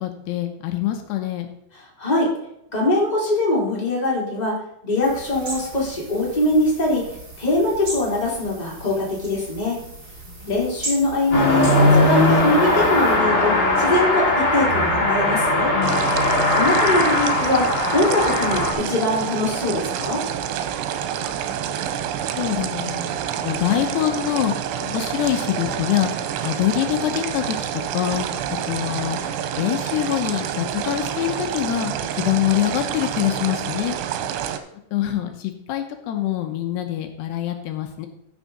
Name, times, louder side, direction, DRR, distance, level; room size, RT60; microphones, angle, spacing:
voice 1, 0.0-1.5 10.3-10.7 15.7-16.6 21.4-22.1 22.3-34.0 34.9-38.1, left 12 dB, 75° left, 5 dB, 2.8 m, -25 dB
voice 2, 2.0-2.3 2.7-4.6 4.8-7.1 7.4-9.8 10.5-15.7 16.5-20.2, left 2 dB, 10° left, -5 dB, 2.8 m, -22 dB
sound 1, 5.0-13.2, right 2 dB, 25° right, 3.6 m, -37 dB
Car passing by / Accelerating revving vroom, 11.3-18.7, left 1 dB, 35° left, 2.4 m, -19 dB
sound 2, 15.8-34.6, right 9 dB, 85° right, 3.2 m, -28 dB
14.0 x 6.2 x 4.1 m, 0.80 s
omnidirectional pair, 5.2 m